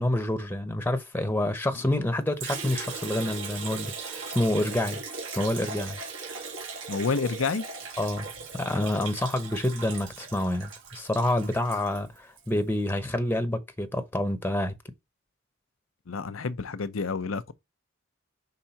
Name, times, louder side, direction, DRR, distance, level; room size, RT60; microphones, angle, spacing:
voice 1, 0.0-5.0 5.4-6.0 8.0-8.3 8.5-14.7, left 1 dB, 10° left, 0.9 m, -28 dB
Liquid, 2.4-12.5, right 4 dB, 70° right, 2.6 m, -38 dB
voice 2, 6.9-7.7 16.1-17.5, left 4 dB, 85° left, 0.7 m, -29 dB
5.7 x 3.7 x 5.7 m
head